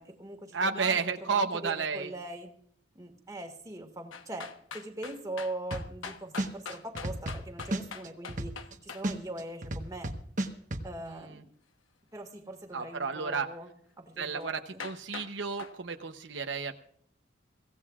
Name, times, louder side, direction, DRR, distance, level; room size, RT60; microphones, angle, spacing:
voice 1, 0.0-2.5 2.9-10.1 10.8-11.5 12.1-13.7 14.0-14.8, right 1 dB, 20° right, 3 dB, 1.9 m, -41 dB
voice 2, 0.5-2.1 11.2-11.3 12.7-13.5 14.2-16.7, right 5 dB, 70° right, 6 dB, 0.8 m, -32 dB
sound 1, 4.1-9.0 14.4-14.5 14.8-15.3 15.6-15.7, left 6 dB, 85° left, 1.1 m, -42 dB
sound 2, 5.7-6.1 6.4-8.7 9.0-10.8, right 1 dB, 40° right, 1.2 m, -32 dB
24.0 x 16.5 x 2.4 m, 0.63 s
head